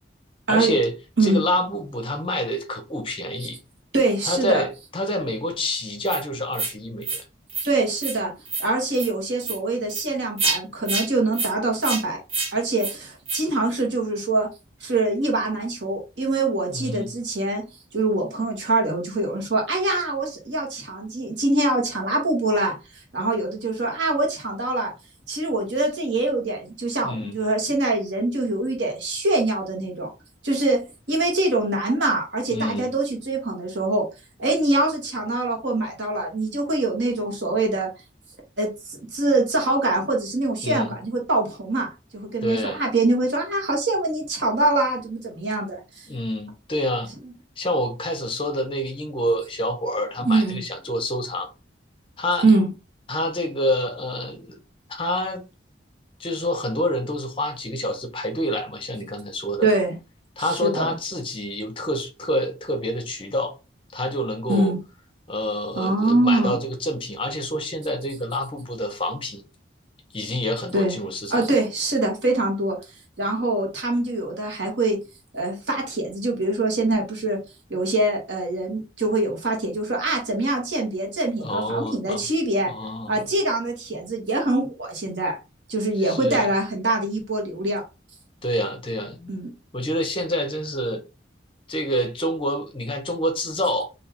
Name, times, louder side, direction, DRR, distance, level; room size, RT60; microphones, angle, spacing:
voice 1, 0.5-0.9 1.2-3.6 4.2-7.2 16.7-17.1 27.0-27.4 32.5-32.9 40.6-40.9 42.4-42.8 46.1-47.1 47.6-51.5 52.2-52.4 53.1-54.6 54.9-55.4 56.2-59.7 60.4-63.6 63.9-64.7 65.3-69.4 70.1-71.4 81.4-82.3 82.7-83.2 86.0-86.5 88.4-89.4 89.7-91.0 91.7-93.9, equal, 30° left, 0.6 m, -27 dB
voice 2, 3.9-4.6 7.6-8.3 8.6-12.2 12.5-14.5 14.8-17.6 17.9-22.8 23.1-24.9 25.3-30.1 30.4-30.8 31.1-34.1 34.4-37.9 38.6-46.1 50.2-50.6 52.4-52.7 59.6-59.9 60.4-60.9 64.5-64.8 65.8-66.6 70.7-70.9 71.3-72.8 73.2-75.0 75.3-77.4 77.7-82.7 83.1-85.4 85.7-87.8 89.3-89.5, right 2 dB, 70° right, 1.3 m, -24 dB
sound 1, 6.1-6.2 6.5-6.7 7.0-7.2 7.5-7.7 8.0-8.2 8.5-8.7 8.9-9.1 9.4-9.6 9.9-10.0 10.4-10.6 10.9-11.1 11.3-11.5 11.8-12.0 12.3-12.5 12.8-12.9 13.3-13.4, right 4 dB, 30° right, 0.7 m, -27 dB
3.4 x 2.7 x 2.9 m
head